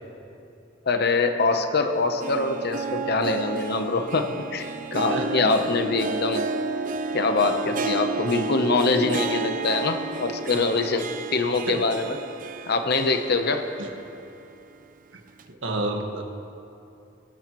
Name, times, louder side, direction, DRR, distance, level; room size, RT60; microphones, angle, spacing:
voice 1, 0.9-6.5 7.1-12.2 12.7-13.7, left 3 dB, 55° left, 7 dB, 0.8 m, -24 dB
Harp, 1.9-14.1 14.4-14.5 15.4-15.5, right 3 dB, 45° right, 0.5 m, -31 dB
voice 2, 5.1-5.4 11.7-11.8 13.8-13.9 15.1-15.2 15.5-16.2, right 2 dB, 85° right, 2 dB, 1.6 m, -29 dB
23.0 x 12.5 x 3.1 m, 2.7 s
head